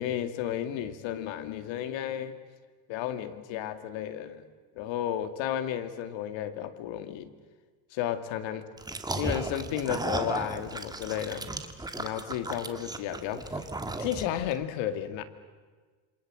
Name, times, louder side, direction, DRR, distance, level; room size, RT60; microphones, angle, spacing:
voice 1, 0.0-2.4 2.9-4.5 4.8-7.3 7.9-8.7 9.2-11.5 12.0-13.6 14.0-15.2, left 10 dB, 65° left, 10 dB, 2.4 m, -33 dB
sound 1, 8.8-14.5, right 2 dB, 10° right, 1.7 m, -35 dB
28.0 x 25.5 x 7.7 m, 1.4 s
cardioid pair, 150°, 49 cm